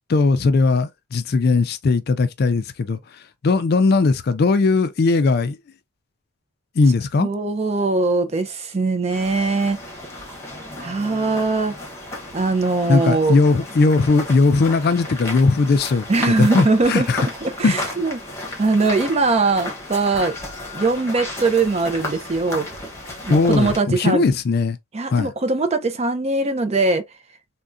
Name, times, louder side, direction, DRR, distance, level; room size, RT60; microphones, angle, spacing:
voice 1, 0.0-3.0 3.4-5.6 6.8-7.3 12.9-17.3 17.6-17.8 23.3-24.8 25.1-25.3, left 3 dB, 50° left, 0.4 m, -18 dB
voice 2, 7.2-9.8 10.8-11.7 12.3-13.4 16.1-17.1 17.4-18.2 18.6-20.3 20.7-22.7 23.2-24.2 24.9-27.0, right 3 dB, 30° right, 0.4 m, -21 dB
sound 1, 9.1-23.8, left 1 dB, 15° left, 0.9 m, -33 dB
3.5 x 2.2 x 2.5 m
head